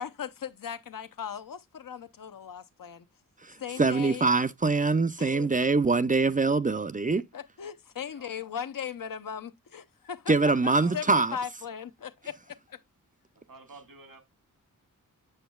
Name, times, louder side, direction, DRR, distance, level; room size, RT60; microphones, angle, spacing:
voice 1, 0.0-3.0 3.6-4.3 5.2-5.5 7.3-10.3 10.6-12.8, left 8 dB, 75° left, 0.8 m, -38 dB
voice 2, 3.8-7.2 10.3-11.4, right 3 dB, 25° right, 0.4 m, -24 dB
voice 3, 13.5-14.2, right 3 dB, 85° right, 1.9 m, -50 dB
7.9 x 6.1 x 2.2 m
wide cardioid pair, 90°, 34 cm